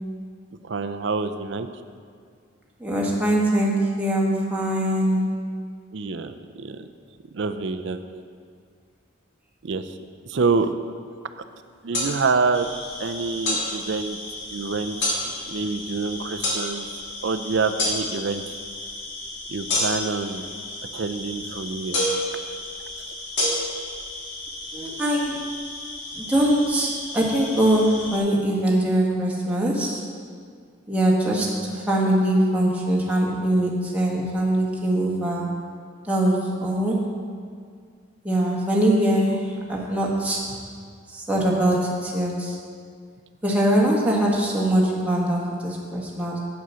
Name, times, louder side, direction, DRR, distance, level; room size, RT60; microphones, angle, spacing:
voice 1, 0.6-1.7 5.9-6.9 7.3-8.2 9.6-9.9 10.3-10.7 11.8-12.7 13.0-14.2 14.5-16.9 17.2-18.6 19.5-20.4 20.9-22.0 23.1-23.2, right 4 dB, 65° right, 10 dB, 0.5 m, -27 dB
voice 2, 2.8-5.3 24.7-25.4 26.1-30.0 30.9-35.5 36.0-37.1 38.2-40.5 41.1-42.6 43.4-46.4, right 1 dB, 5° right, -4 dB, 1.4 m, -22 dB
sound 1, 11.9-12.1 13.5-13.6 15.0-15.2 16.4-16.6 17.8-18.0 19.7-20.1 21.9-22.2 23.4-23.5, left 1 dB, 60° left, 2.5 m, -23 dB
sound 2, 12.5-28.2, left 2 dB, 85° left, 1.7 m, -37 dB
8.1 x 7.7 x 5.6 m, 2.1 s
head